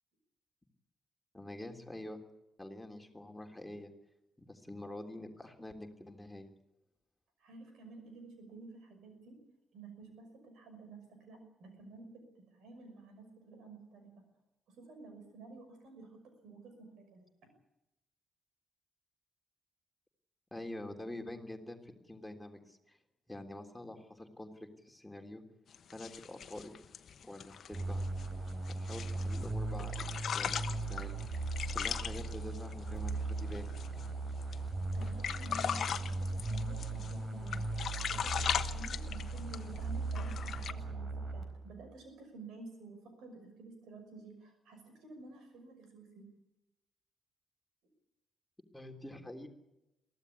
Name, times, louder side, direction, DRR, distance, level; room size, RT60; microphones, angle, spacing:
voice 1, 1.3-2.2 2.6-3.9 4.4-6.5 20.5-23.0 23.3-25.4 25.9-26.7 27.2-28.0 28.8-30.0 30.3-31.2 31.7-33.7 48.7-49.5, left 1 dB, 10° left, 3 dB, 3.3 m, -46 dB
voice 2, 7.4-9.4 9.7-12.3 12.5-14.2 14.7-17.2 34.9-37.8 38.1-46.3, right 3 dB, 70° right, 7 dB, 5.9 m, -52 dB
sound 1, 25.7-29.5 29.8-34.1 34.4-34.5 34.9-37.2 37.5-39.8 40.1-40.7, left 8 dB, 60° left, 1.1 m, -39 dB
sound 2, 27.7-41.8, right 3 dB, 50° right, 4.4 m, -38 dB
23.5 x 15.0 x 8.5 m, 0.93 s
hypercardioid pair, 40°, 0 cm